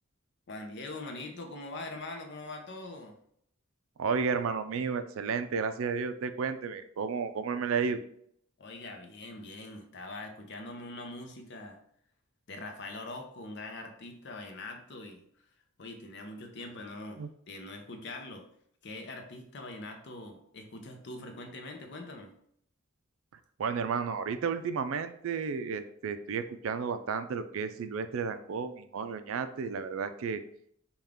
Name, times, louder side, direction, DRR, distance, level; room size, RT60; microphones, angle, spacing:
voice 1, 0.5-3.2 8.6-11.8 12.5-15.5 15.8-18.5 18.8-22.3, left 2 dB, 55° left, 4 dB, 0.7 m, -43 dB
voice 2, 4.0-8.1 17.2-17.3 23.6-30.4, right 5 dB, 70° right, 10 dB, 0.4 m, -32 dB
5.5 x 2.3 x 3.5 m, 0.67 s
head